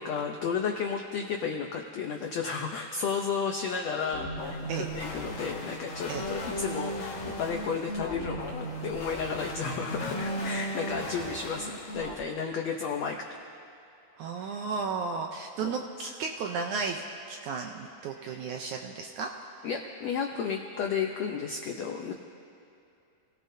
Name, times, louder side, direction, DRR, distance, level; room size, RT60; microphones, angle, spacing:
voice 1, 0.0-13.2 14.4-14.6 15.6-16.1 18.1-18.4 19.6-22.1, left 6 dB, 85° left, 2 dB, 1.5 m, -33 dB
sound 1, 4.1-12.1, equal, 55° left, 2.9 m, -36 dB
voice 2, 14.2-19.3 19.6-19.7, right 5 dB, 75° right, 2 dB, 1.8 m, -34 dB
29.0 x 18.0 x 2.8 m, 2.7 s
omnidirectional pair, 4.2 m